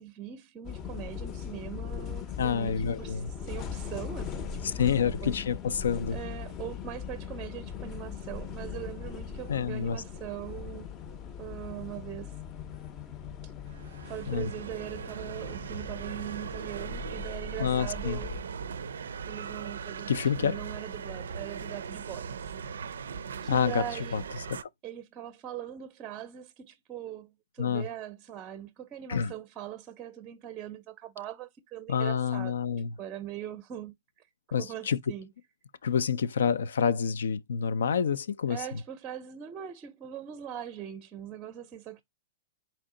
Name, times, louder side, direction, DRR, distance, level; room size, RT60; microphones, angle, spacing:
voice 1, 0.0-4.9 5.2-5.3 6.1-10.9 11.4-12.3 14.1-18.3 19.3-20.1 20.4-22.5 22.8-24.2 24.8-32.6 33.0-34.3 34.6-35.3 38.5-42.0, right 11 dB, 25° right, 0.5 m, -41 dB
sound 1, 0.6-18.4, left 7 dB, 30° left, 0.6 m, -40 dB
voice 2, 2.4-3.3 4.6-6.2 9.5-10.0 14.3-14.5 17.6-18.2 20.1-20.6 23.5-23.8 24.1-24.2 24.5-24.6 27.6-27.9 29.1-29.3 31.9-32.9 34.5-35.0 35.8-38.6, left 7 dB, 80° left, 0.4 m, -28 dB
sound 2, 13.7-24.6, right 6 dB, 85° right, 0.4 m, -39 dB
4.4 x 2.7 x 3.7 m
hypercardioid pair, 135°, 0 cm